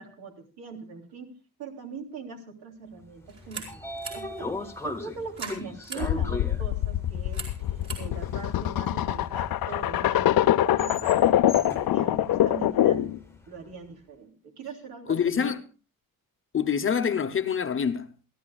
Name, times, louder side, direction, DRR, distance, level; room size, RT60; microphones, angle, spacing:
voice 1, 0.0-1.3 1.6-7.4 8.0-13.1 13.5-15.6, right 4 dB, 80° right, 3.1 m, -41 dB
Train / Sliding door, 3.2-13.4, left 2 dB, 5° left, 1.2 m, -39 dB
sound 1, 3.3-9.5, right 4 dB, 40° right, 4.9 m, -44 dB
sound 2, 6.0-13.2, left 12 dB, 70° left, 0.7 m, -24 dB
voice 2, 15.1-15.6 16.5-18.1, left 7 dB, 35° left, 0.8 m, -25 dB
27.5 x 12.0 x 2.4 m
cardioid pair, 155°, 37 cm